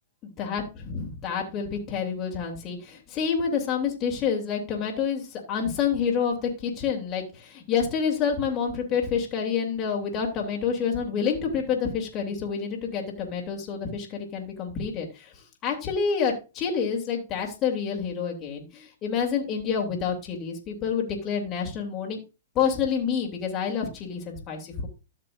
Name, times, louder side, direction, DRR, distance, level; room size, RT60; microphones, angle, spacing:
voice 1, 0.9-22.2 22.5-24.9, left 6 dB, 30° left, 0 dB, 3.0 m, -28 dB
13.0 x 6.7 x 2.6 m, 0.29 s
hypercardioid pair, 125°, 0 cm